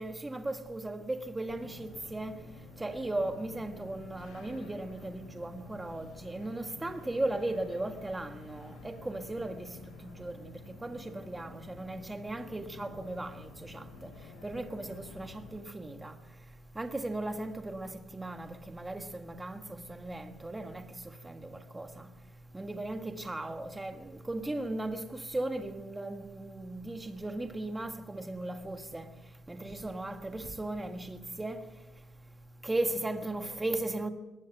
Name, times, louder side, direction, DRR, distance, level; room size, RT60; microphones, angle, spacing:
voice 1, 0.0-2.3 2.8-9.7 10.0-10.5 10.8-14.1 14.4-16.2 16.7-19.6 19.9-20.8 21.2-22.1 22.5-29.0 29.5-31.6 32.6-34.1, right 2 dB, 10° right, 1.5 m, -37 dB
sound 1, 1.5-15.6, left 4 dB, 75° left, 7.9 m, -51 dB
21.0 x 18.5 x 8.0 m
cardioid pair, 170°, 0 cm